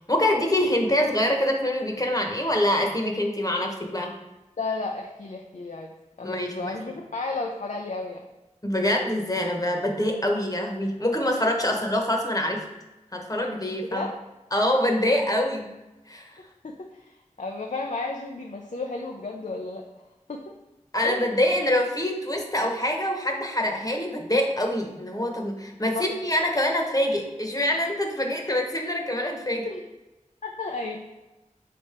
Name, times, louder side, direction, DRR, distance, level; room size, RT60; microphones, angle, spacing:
voice 1, 0.1-4.1 6.2-6.8 8.6-12.6 13.1-14.1 14.5-15.7 16.1-16.3 20.9-29.7, left 1 dB, 25° left, 2 dB, 1.1 m, -25 dB
voice 2, 4.6-5.9 6.2-8.2 10.1-10.2 13.8-14.1 16.4-19.8 20.3-20.5 21.0-21.3 29.6-29.8 30.4-31.0, left 3 dB, 65° left, 2 dB, 0.5 m, -33 dB
5.1 x 4.3 x 4.3 m, 1.0 s
wide cardioid pair, 50°, 13 cm